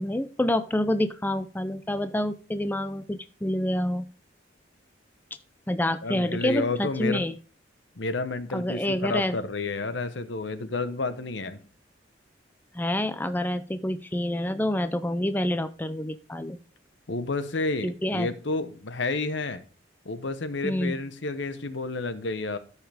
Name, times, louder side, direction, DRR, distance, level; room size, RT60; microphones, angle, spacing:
voice 1, 0.0-4.1 5.7-7.3 8.5-9.4 12.7-16.6 17.8-18.3 20.6-21.0, left 1 dB, 10° left, 11 dB, 0.5 m, -27 dB
voice 2, 6.0-7.2 8.0-11.6 17.1-19.6 20.0-22.6, left 3 dB, 65° left, 12 dB, 1.0 m, -30 dB
13.0 x 5.7 x 3.5 m, 0.39 s
head